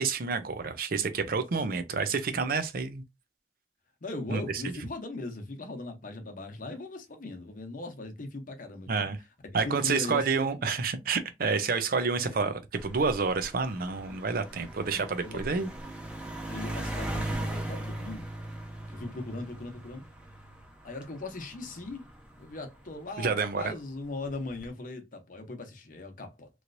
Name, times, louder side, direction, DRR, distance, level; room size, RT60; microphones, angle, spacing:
voice 1, 0.0-3.0 4.3-4.4 8.9-9.2 9.5-15.7 23.2-23.7, right 4 dB, 55° right, 0.5 m, -29 dB
voice 2, 4.0-9.1 9.6-10.3 10.6-10.7 12.2-12.4 15.2-15.7 16.5-18.2 18.9-20.0 20.8-22.1 22.4-26.5, left 2 dB, 50° left, 0.9 m, -39 dB
sound 1, 12.8-23.5 24.3-24.7, right 1 dB, 5° right, 0.7 m, -39 dB
3.1 x 2.9 x 2.6 m
head